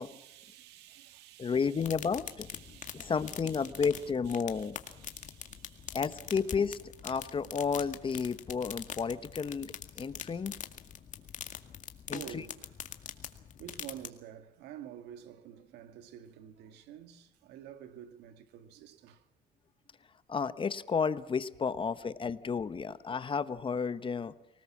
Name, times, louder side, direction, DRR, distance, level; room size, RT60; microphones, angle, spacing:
voice 1, 0.0-1.9 2.3-6.0 11.3-11.4 12.1-12.7 13.6-19.3, right 10 dB, 90° right, 1.7 m, -50 dB
voice 2, 1.4-2.5 2.9-4.8 5.9-10.5 12.1-12.4 20.3-24.3, left 5 dB, 30° left, 1.1 m, -32 dB
sound 1, 1.8-14.1, left 8 dB, 45° left, 2.1 m, -44 dB
24.5 x 18.5 x 7.3 m
cardioid pair, 110°, 17 cm